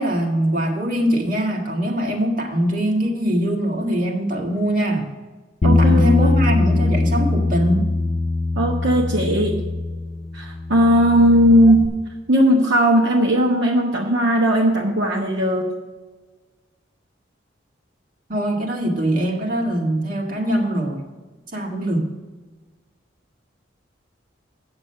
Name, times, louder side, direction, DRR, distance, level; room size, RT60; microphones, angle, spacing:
voice 1, 0.0-5.1 5.6-7.9 18.3-21.0 21.5-22.1, right 1 dB, 45° right, 1 dB, 1.8 m, -22 dB
Bass guitar, 5.6-11.9, left 2 dB, 40° left, 0.6 m, -21 dB
voice 2, 5.6-6.3 8.6-9.6 10.3-11.9 12.3-15.7, equal, 70° right, 0 dB, 1.1 m, -17 dB
9.0 x 7.2 x 5.4 m, 1.3 s
head